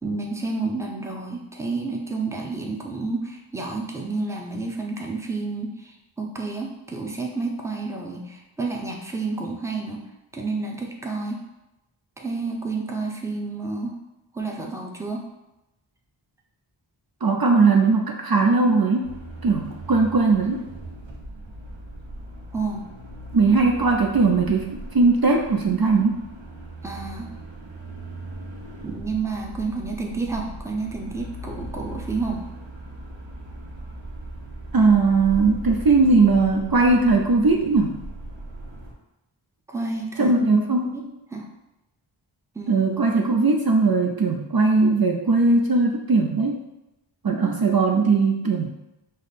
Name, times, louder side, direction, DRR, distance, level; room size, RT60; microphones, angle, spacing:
voice 1, 0.0-10.0 10.3-11.4 12.2-13.9 14.3-15.2 22.5-22.9 26.8-27.3 28.8-32.5 39.7-40.3 40.7-41.5 42.5-42.8, right 3 dB, 5° right, 0 dB, 0.6 m, -30 dB
voice 2, 17.2-19.1 19.4-20.6 23.3-24.7 24.9-26.2 34.7-38.0 40.2-41.0 42.7-46.6 47.2-48.7, right 3 dB, 50° right, 1 dB, 0.5 m, -19 dB
sound 1, 19.0-38.9, right 1 dB, 70° right, 0.9 m, -39 dB
5.1 x 2.1 x 4.1 m, 0.93 s
wide cardioid pair, 40°, 48 cm